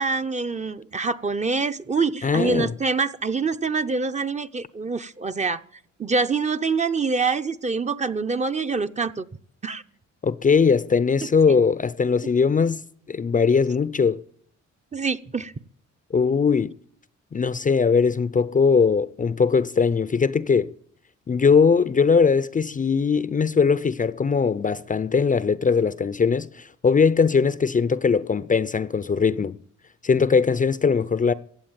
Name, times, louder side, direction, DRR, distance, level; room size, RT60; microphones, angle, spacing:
voice 1, 0.0-5.6 6.0-9.2 9.6-9.8 14.9-15.5, right 4 dB, 25° right, 0.7 m, -25 dB
voice 2, 2.2-2.7 10.2-12.8 13.1-14.2 16.1-16.7 17.3-20.7 21.3-29.6 30.0-31.3, left 5 dB, 25° left, 0.5 m, -20 dB
15.5 x 8.7 x 8.8 m
cardioid pair, 90°, 30 cm